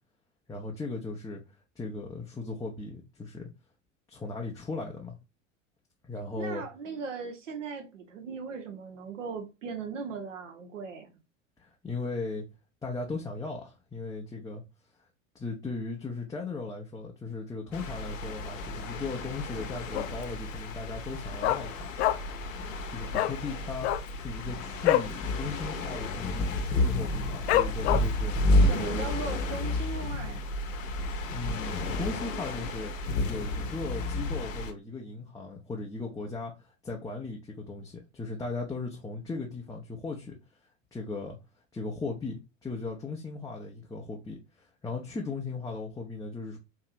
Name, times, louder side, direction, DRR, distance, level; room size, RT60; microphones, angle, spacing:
voice 1, 0.5-1.4 1.8-3.5 4.1-5.2 6.0-6.6 11.6-12.4 12.8-14.6 15.3-21.9 22.9-29.1 31.3-32.9 33.3-40.4 40.9-41.4 41.7-46.6, left 3 dB, 10° left, 0.6 m, -37 dB
voice 2, 6.4-11.2 28.5-30.4, right 5 dB, 70° right, 1.2 m, -38 dB
sound 1, 17.7-34.7, left 2 dB, 70° left, 0.9 m, -31 dB
Dog, 19.9-20.4 20.6-20.7 21.0-22.4 22.7-22.8 23.1-23.4 23.7-25.2 25.5-25.7 25.9-26.3 26.8-26.9 27.5-28.3 28.7-28.8, left 13 dB, 55° left, 0.5 m, -26 dB
4.5 x 2.8 x 2.5 m
figure-of-eight pair, 80°, 39 cm